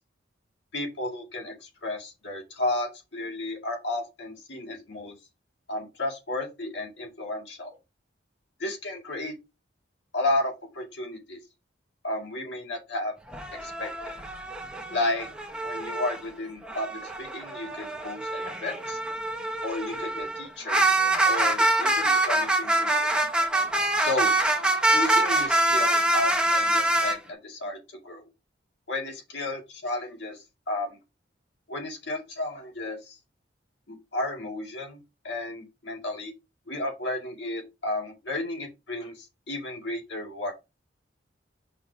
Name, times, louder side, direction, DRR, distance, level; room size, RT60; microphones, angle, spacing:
voice 1, 0.7-5.1 5.7-7.8 8.6-9.3 10.1-11.4 12.0-13.1 13.6-14.2 14.9-15.3 15.6-19.0 19.6-23.1 24.0-24.3 24.9-27.8 28.0-28.3 28.9-30.4 30.7-31.0 31.7-33.2 33.9-36.3 36.7-40.5, left 2 dB, 70° left, 2.3 m, -33 dB
sound 1, 13.3-16.2 16.6-27.2, right 2 dB, 5° right, 1.2 m, -25 dB
5.6 x 3.6 x 5.0 m
head